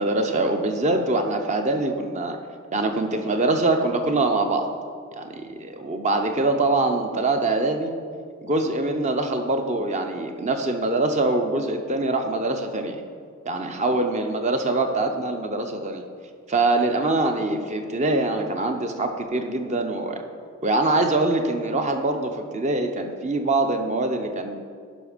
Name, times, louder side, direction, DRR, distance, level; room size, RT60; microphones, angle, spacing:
voice 1, 0.0-2.4 2.7-4.7 5.2-7.9 8.4-13.0 13.5-16.1 16.5-20.2 20.6-24.6, right 2 dB, 30° right, 5 dB, 0.6 m, -24 dB
11.5 x 5.2 x 5.1 m, 2.1 s
head